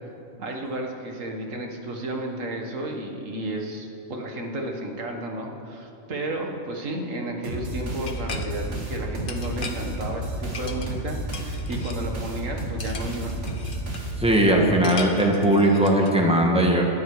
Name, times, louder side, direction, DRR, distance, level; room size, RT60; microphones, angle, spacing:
voice 1, 0.4-13.4, right 1 dB, 90° right, 2 dB, 2.0 m, -32 dB
sound 1, 7.4-14.6, right 1 dB, 70° right, 2.3 m, -32 dB
sound 2, 8.0-8.5 9.3-9.9 10.5-11.1 11.3-12.0 12.8-14.1 14.8-16.1, left 4 dB, 45° left, 1.2 m, -38 dB
voice 2, 14.2-16.8, right 1 dB, 5° right, 0 dB, 1.7 m, -19 dB
19.0 x 13.5 x 4.9 m, 2.7 s
omnidirectional pair, 1.3 m